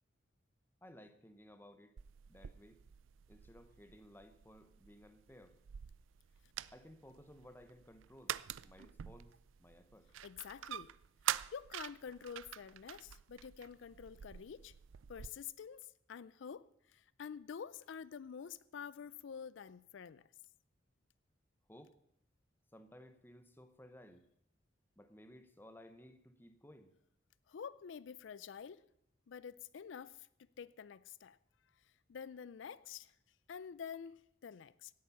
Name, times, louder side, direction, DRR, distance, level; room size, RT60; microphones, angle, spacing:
voice 1, 0.8-1.9 2.3-2.8 3.3-5.6 6.7-8.4 8.6-9.3 9.6-10.1 21.7-21.9 22.7-24.2 25.0-26.9, equal, 10° left, 0.8 m, -58 dB
sound 1, 2.0-15.3, right 11 dB, 85° right, 0.4 m, -46 dB
voice 2, 10.2-10.9 11.5-14.7 15.1-20.3 27.5-28.8 29.3-30.3 30.6-31.4 32.1-33.2 33.5-34.9, left 7 dB, 75° left, 0.4 m, -48 dB
17.0 x 8.6 x 5.6 m
head